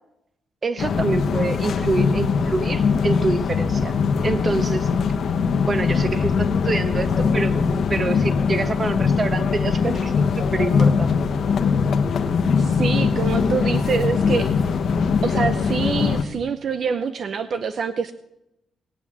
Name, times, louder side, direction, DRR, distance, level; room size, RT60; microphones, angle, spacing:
voice 1, 0.6-3.9 4.2-4.9 5.7-7.6 7.9-11.2, right 3 dB, 30° right, 11 dB, 1.2 m, -26 dB
sound 1, 0.8-16.2, left 5 dB, 60° left, 1.2 m, -21 dB
voice 2, 12.6-14.8 15.2-18.1, right 6 dB, 55° right, 10 dB, 0.7 m, -26 dB
20.0 x 8.0 x 7.3 m, 0.87 s
cardioid pair, 125°, 0 cm